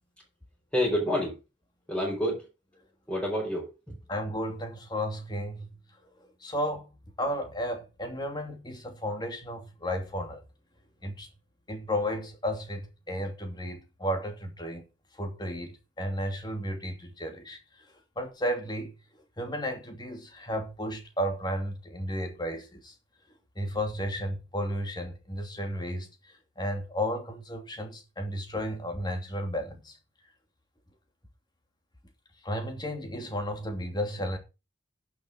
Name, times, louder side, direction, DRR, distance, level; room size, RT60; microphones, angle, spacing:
voice 1, 0.7-1.4 1.9-2.5 3.1-3.9, equal, 5° left, 4.9 m, -28 dB
voice 2, 4.1-5.7 6.4-6.9 7.2-10.4 11.0-11.3 11.7-14.8 15.2-17.6 18.2-18.9 19.4-22.9 23.6-26.1 26.6-30.0 32.4-34.4, equal, 20° left, 2.6 m, -33 dB
11.0 x 6.7 x 6.3 m
head